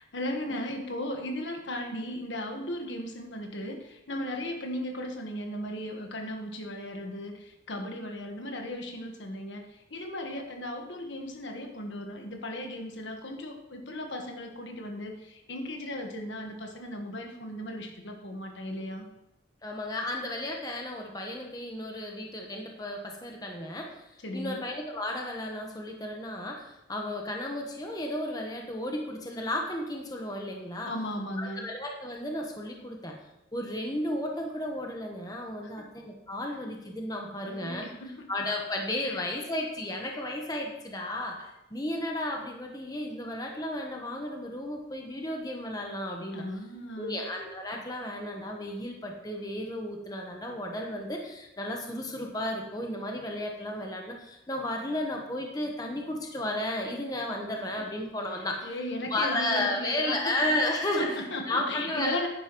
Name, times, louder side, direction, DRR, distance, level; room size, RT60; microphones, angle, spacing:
voice 1, 0.0-19.1 24.2-24.6 30.8-31.7 35.6-35.9 37.4-38.3 39.0-39.2 46.3-47.2 58.4-60.6 60.9-62.3, left 1 dB, 80° left, 3 dB, 1.4 m, -36 dB
voice 2, 19.6-24.0 24.3-30.9 31.4-33.1 33.5-37.8 38.3-46.5 47.0-58.7 59.1-62.3, left 1 dB, 20° left, 1 dB, 1.1 m, -33 dB
10.0 x 10.0 x 3.1 m, 0.90 s
head